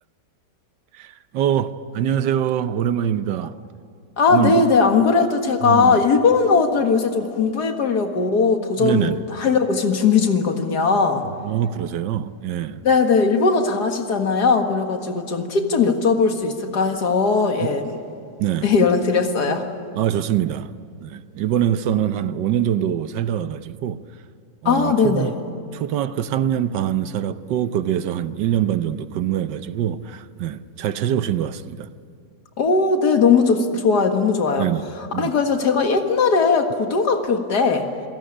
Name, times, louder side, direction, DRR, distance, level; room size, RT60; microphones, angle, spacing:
voice 1, 1.0-3.6 4.3-4.6 5.6-6.0 8.8-9.2 11.4-12.8 17.6-17.7 18.4-18.7 19.9-20.7 21.0-24.0 24.6-25.3 25.7-31.9 34.6-34.8 35.1-35.3, right 10 dB, 80° right, 1.4 m, -24 dB
voice 2, 4.2-11.2 12.8-17.9 18.6-19.7 24.7-25.3 32.6-34.7 35.1-37.9, left 4 dB, 65° left, 2.3 m, -19 dB
28.0 x 17.0 x 9.9 m
omnidirectional pair, 1.9 m